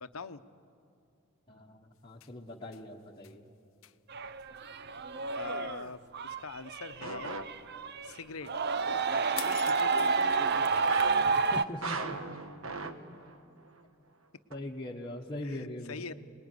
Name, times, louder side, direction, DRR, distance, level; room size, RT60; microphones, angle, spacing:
voice 1, 0.0-0.4 5.3-7.4 8.0-8.5 9.1-11.0 15.4-16.1, left 4 dB, 90° left, 11 dB, 0.9 m, -43 dB
voice 2, 1.5-3.5 11.5-12.2 12.8-13.0 14.5-16.1, left 1 dB, 20° left, -3 dB, 1.4 m, -41 dB
sound 1, 2.0-2.8 3.2-3.4 3.8-4.0 4.4-4.6 9.4-10.4, left 14 dB, 70° left, 0.7 m, -45 dB
sound 2, 4.1-8.1 8.5-11.6, right 4 dB, 50° right, 0.7 m, -30 dB
sound 3, 5.2-5.5 7.0-8.1 10.9-13.4 13.7-13.8 14.5-14.6, right 3 dB, 70° right, 1.4 m, -39 dB
27.0 x 20.0 x 9.7 m, 2.5 s
head